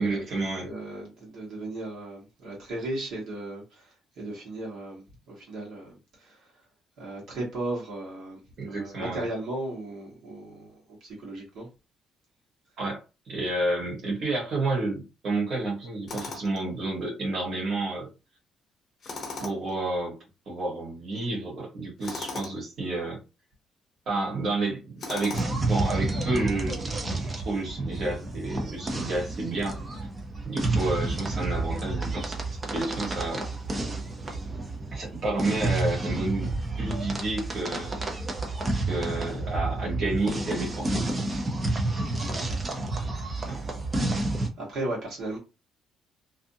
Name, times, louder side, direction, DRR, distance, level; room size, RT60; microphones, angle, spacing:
voice 1, 0.0-0.7 8.6-9.2 12.8-18.1 19.4-20.1 20.5-23.2 24.1-25.4 25.7-29.8 30.4-32.4 32.7-33.4 34.9-36.5 36.8-38.0 38.9-41.2 43.5-43.6, right 2 dB, 45° right, 1.3 m, -30 dB
voice 2, 0.6-6.5 7.0-11.7 42.2-42.5 44.6-45.4, right 2 dB, 60° right, 1.2 m, -36 dB
Tools, 16.1-16.6 19.0-19.8 22.0-22.6 25.0-25.7, left 3 dB, 35° left, 0.7 m, -37 dB
sound 1, 25.3-44.5, right 2 dB, 20° right, 0.5 m, -30 dB
2.6 x 2.4 x 2.6 m
cardioid pair, 175°, 0 cm